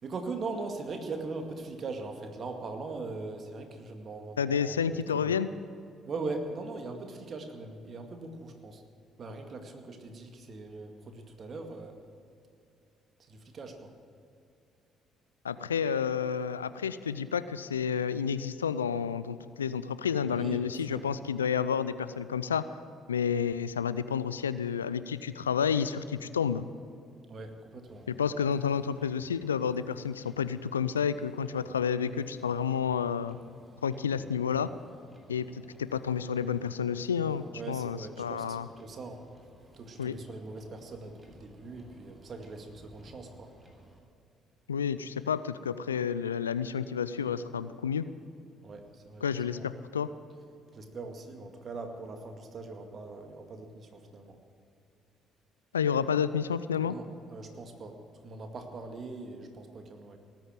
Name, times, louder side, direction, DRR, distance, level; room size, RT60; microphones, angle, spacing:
voice 1, 0.0-5.3 6.1-8.8 9.2-12.0 13.2-13.9 20.3-21.0 27.3-28.1 37.5-39.2 39.7-43.5 48.6-49.3 49.5-49.7 50.7-54.4 56.8-57.0 57.3-60.2, right 3 dB, 45° right, 4 dB, 2.1 m, -41 dB
voice 2, 4.4-5.5 15.4-22.7 23.1-26.6 28.1-33.4 33.8-34.7 35.3-38.7 40.0-40.2 44.7-48.1 49.2-50.1 55.7-57.0, left 7 dB, 85° left, 15 dB, 0.4 m, -30 dB
Motor vehicle (road), 27.9-44.0, equal, 15° right, 3.3 m, -58 dB
18.5 x 9.2 x 7.5 m, 2.5 s
figure-of-eight pair, 50°, 0 cm